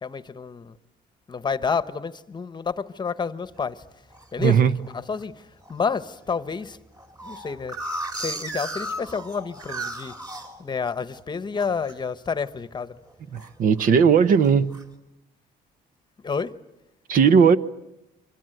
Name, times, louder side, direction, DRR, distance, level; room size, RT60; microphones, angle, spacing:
voice 1, 0.0-0.7 1.3-3.8 4.3-5.4 5.7-6.8 7.2-7.8 8.2-10.1 10.6-13.0 16.2-16.5, left 5 dB, 25° left, 1.1 m, -29 dB
sound 1, 3.6-4.3 4.8-5.2 5.6-5.7 6.0-6.1 6.4-11.2 11.5-12.0 12.3-12.6 12.9-13.9 14.4-14.8, right 1 dB, 20° right, 4.0 m, -35 dB
voice 2, 4.4-4.7 13.3-14.7 17.1-17.6, right 6 dB, 55° right, 1.0 m, -17 dB
29.0 x 25.5 x 7.9 m
cardioid pair, 110°, 17 cm